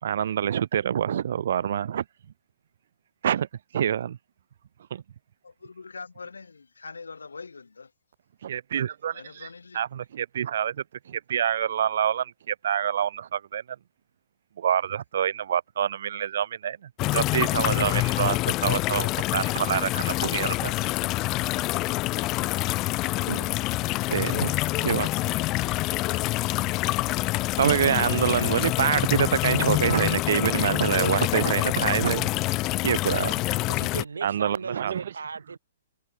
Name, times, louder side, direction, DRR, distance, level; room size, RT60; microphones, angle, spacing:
voice 1, 0.0-2.0 3.2-3.5 3.7-4.2 4.9-5.0 8.4-9.5 9.7-10.8 11.1-13.6 14.6-16.8 17.1-20.7 23.3-23.5 24.1-25.1 27.6-32.3 32.8-33.4 34.2-35.0, right 9 dB, 65° right, 1.9 m, -26 dB
voice 2, 5.4-7.9 9.1-9.8, left 4 dB, 85° left, 6.1 m, -43 dB
sound 1, 17.0-34.0, left 20 dB, 30° left, 2.7 m, -26 dB
voice 3, 33.7-35.6, right 5 dB, 85° right, 6.8 m, -36 dB
hypercardioid pair, 130°, 0 cm